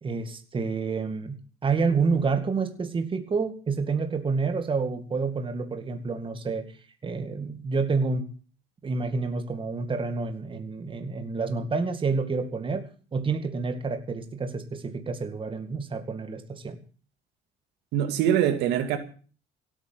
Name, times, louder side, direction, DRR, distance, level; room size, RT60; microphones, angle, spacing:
voice 1, 0.0-6.7 7.0-8.3 8.8-16.8, right 4 dB, 30° right, 2.1 m, -28 dB
voice 2, 17.9-19.0, right 10 dB, 90° right, 2.4 m, -23 dB
16.5 x 9.1 x 7.7 m
cardioid pair, 110°, 17 cm